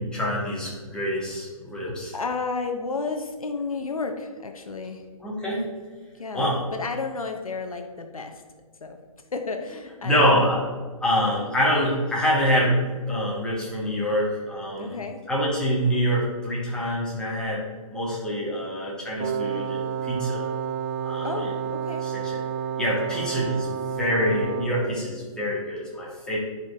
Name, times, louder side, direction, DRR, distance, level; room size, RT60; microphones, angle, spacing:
voice 1, 0.0-2.1 5.2-5.7 6.3-6.6 10.0-10.6 11.0-15.0 15.3-17.6 17.9-20.5 21.0-21.5 22.0-22.4 22.8-23.7 24.0-26.4, equal, 5° left, -6 dB, 1.7 m, -25 dB
voice 2, 1.9-5.0 6.2-8.4 8.8-9.0 9.3-10.6 14.8-15.2 21.2-22.0, left 4 dB, 75° left, 5 dB, 0.8 m, -32 dB
Wind instrument woodwind instrument, 19.2-24.9, right 8 dB, 30° right, 0.4 m, -30 dB
9.5 x 5.2 x 2.7 m, 1.4 s
figure-of-eight pair, 125°, 18 cm